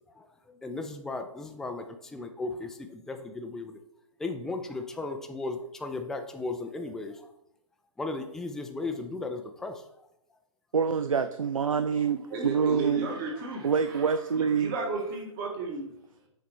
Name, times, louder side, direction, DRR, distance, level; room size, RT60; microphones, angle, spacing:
voice 1, 0.1-3.8 4.2-7.3 8.0-9.8, left 3 dB, 5° left, 5 dB, 0.4 m, -36 dB
voice 2, 10.7-13.1 13.6-14.7, right 6 dB, 80° right, 10 dB, 0.4 m, -26 dB
voice 3, 12.3-15.9, right 3 dB, 35° right, -1 dB, 1.6 m, -35 dB
6.8 x 5.0 x 4.6 m, 0.80 s
figure-of-eight pair, 120°, 17 cm